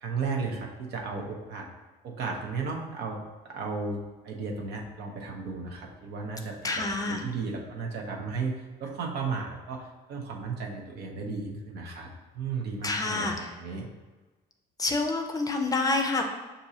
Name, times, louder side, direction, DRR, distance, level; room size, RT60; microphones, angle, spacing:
voice 1, 0.0-1.7 2.0-3.2 3.4-12.1 12.3-13.9, right 4 dB, 75° right, 0 dB, 0.8 m, -34 dB
voice 2, 6.6-7.2 12.8-13.5 14.8-16.2, left 3 dB, 20° left, 4 dB, 0.5 m, -27 dB
5.9 x 2.6 x 2.7 m, 1.2 s
cardioid pair, 110°, 17 cm